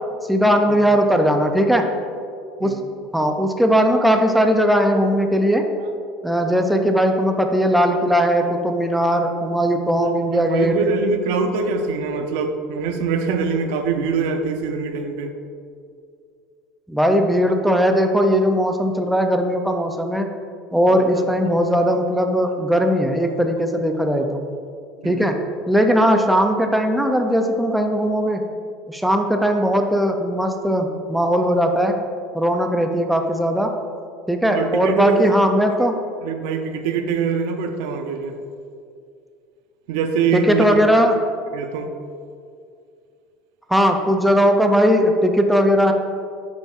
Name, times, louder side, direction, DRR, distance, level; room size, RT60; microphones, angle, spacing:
voice 1, 0.3-1.8 2.6-2.7 3.1-5.6 6.2-10.7 16.9-20.3 20.7-24.4 25.0-25.4 25.7-28.4 28.9-32.0 32.3-33.7 34.3-35.9 40.3-41.2 43.7-45.9, equal, ahead, 4 dB, 0.4 m, -18 dB
voice 2, 10.4-15.3 20.9-21.1 25.0-25.3 34.5-35.4 36.2-38.4 39.9-40.8 41.5-41.9, right 5 dB, 80° right, 7 dB, 0.6 m, -23 dB
9.1 x 5.2 x 2.4 m, 2.4 s
cardioid pair, 160°, 0 cm